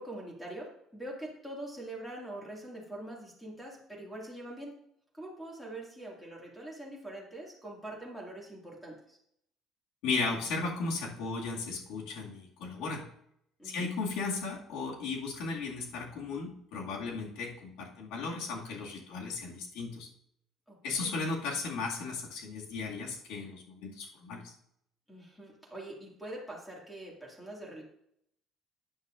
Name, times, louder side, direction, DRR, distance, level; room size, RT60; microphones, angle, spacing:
voice 1, 0.0-4.7 5.1-9.2 13.6-13.9 20.7-21.1 25.1-27.8, right 1 dB, 5° left, -2 dB, 2.3 m, -44 dB
voice 2, 10.0-13.1 13.6-20.1 20.8-24.5, left 4 dB, 85° left, -1 dB, 2.2 m, -35 dB
12.5 x 9.3 x 2.6 m, 0.74 s
cardioid pair, 180°, 0 cm